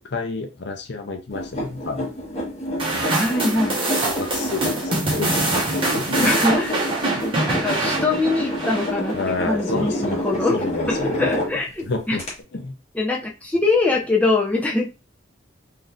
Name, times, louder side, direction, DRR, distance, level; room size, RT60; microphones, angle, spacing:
voice 1, 0.0-2.1 2.9-3.0 4.0-4.9 5.2-5.3 5.7-6.3 9.1-11.3 11.9-12.2 12.5-12.8, left 3 dB, 55° left, 5 dB, 0.6 m, -29 dB
sound 1, 1.3-11.8 12.2-12.3, left 1 dB, 30° left, 1.2 m, -28 dB
sound 2, 2.8-9.3, right 2 dB, 25° right, 1.1 m, -24 dB
voice 2, 3.2-3.8 6.2-6.7 7.2-9.2 9.4-10.5 10.9-12.2 12.9-14.9, left 2 dB, 5° left, -2 dB, 0.6 m, -23 dB
3.8 x 2.7 x 2.4 m, 0.28 s
head